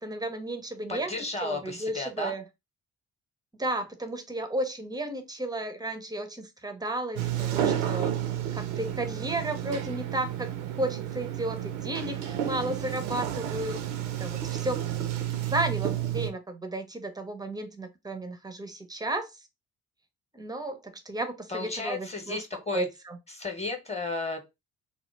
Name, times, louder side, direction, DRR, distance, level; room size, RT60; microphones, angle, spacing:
voice 1, 0.0-2.4 3.6-8.2 8.5-10.5 10.8-13.8 14.2-14.8 15.4-19.3 20.3-22.4 22.7-23.2, right 1 dB, 10° right, 0.5 m, -33 dB
voice 2, 0.9-2.4 21.5-22.9 23.3-24.4, left 3 dB, 15° left, 0.8 m, -33 dB
Sliding door, 7.2-16.3, right 11 dB, 75° right, 0.5 m, -31 dB
2.1 x 2.1 x 3.1 m
hypercardioid pair, 45°, 39 cm